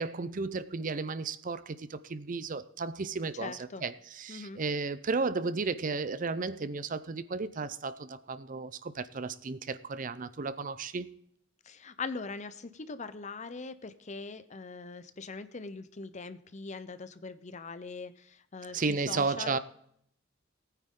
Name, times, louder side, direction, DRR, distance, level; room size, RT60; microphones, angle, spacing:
voice 1, 0.0-11.1 18.7-19.6, right 4 dB, 45° right, 0.6 m, -34 dB
voice 2, 3.4-3.8 4.3-4.6 11.6-19.6, left 4 dB, 40° left, 0.7 m, -41 dB
18.5 x 9.2 x 3.8 m
head